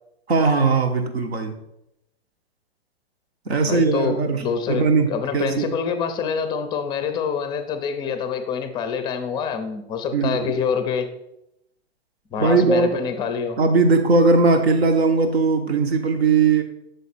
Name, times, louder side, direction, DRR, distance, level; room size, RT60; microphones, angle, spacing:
voice 1, 0.3-1.5 3.5-4.4 4.7-5.7 10.1-10.5 12.4-13.0 13.6-16.6, right 4 dB, 80° right, 6 dB, 1.1 m, -19 dB
voice 2, 3.6-11.1 12.3-13.6, left 6 dB, 15° left, 8 dB, 0.5 m, -26 dB
6.8 x 4.1 x 4.2 m, 0.83 s
hypercardioid pair, 125°, 32 cm